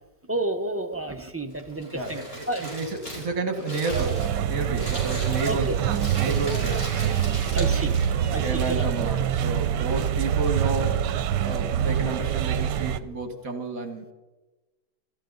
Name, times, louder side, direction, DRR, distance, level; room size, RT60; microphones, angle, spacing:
voice 1, 0.3-2.2 2.5-2.6 5.5-5.8 6.3-6.4 7.5-7.9 8.3-8.9, right 2 dB, 10° right, 4 dB, 0.6 m, -30 dB
Crumpling crinkling, 1.5-8.3, equal, 30° left, 5.2 m, -39 dB
voice 2, 1.9-5.7 6.1-6.9 8.4-11.0 11.4-14.0, right 3 dB, 55° right, 6 dB, 2.0 m, -31 dB
sound 1, 3.9-13.0, right 9 dB, 80° right, 1.3 m, -25 dB
sound 2, 4.8-10.4, left 3 dB, 10° left, 3.0 m, -45 dB
25.5 x 13.5 x 4.0 m, 1.2 s
omnidirectional pair, 1.9 m